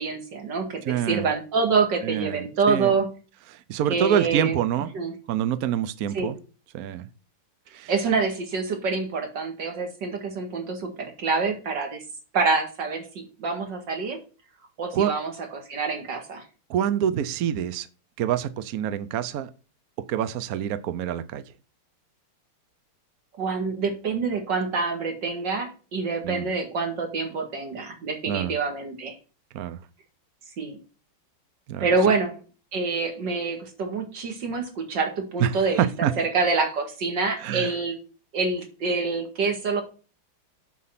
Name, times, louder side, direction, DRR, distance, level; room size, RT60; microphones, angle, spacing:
voice 1, 0.0-3.1 3.9-4.5 4.9-5.1 6.1-6.3 7.9-12.0 12.3-14.2 14.8-16.4 23.4-29.1 30.6-30.8 31.8-32.3 32.7-38.0 38.3-39.8, right 4 dB, 55° right, 4 dB, 2.5 m, -26 dB
voice 2, 0.8-1.3 2.0-2.9 3.5-4.9 5.3-6.4 6.7-7.1 7.7-7.9 14.9-15.1 16.7-17.9 18.2-19.5 20.1-21.4 26.2-26.5 28.3-28.5 29.5-29.8 31.7-31.9 35.4-35.5 35.8-36.1 37.4-37.8, right 10 dB, 70° right, 13 dB, 0.8 m, -26 dB
7.4 x 6.4 x 5.8 m, 0.35 s
omnidirectional pair, 2.4 m